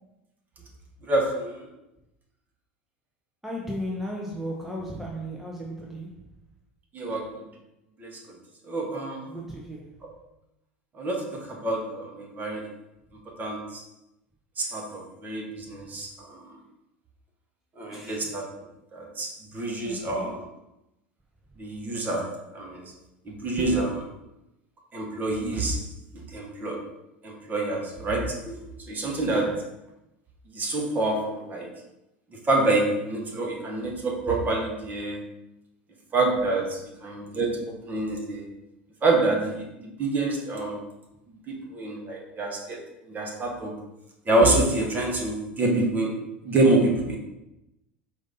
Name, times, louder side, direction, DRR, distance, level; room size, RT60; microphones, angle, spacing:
voice 1, 1.0-1.7 6.9-7.4 8.0-8.2 8.6-9.2 10.0-10.1 10.9-12.7 13.3-13.8 14.6-16.6 17.8-18.4 18.9-20.4 21.6-22.9 23.2-24.1 24.9-26.9 27.2-29.7 30.5-31.7 32.3-35.3 36.1-38.5 39.0-40.8 41.5-43.7 44.3-46.2 46.4-47.2, right 2 dB, 30° right, 0 dB, 1.2 m, -27 dB
voice 2, 3.4-6.3 9.3-10.0 17.9-18.3 19.8-20.4 29.4-29.6, equal, 5° right, -2 dB, 0.7 m, -36 dB
4.9 x 2.7 x 3.8 m, 0.91 s
hypercardioid pair, 85°, 6 cm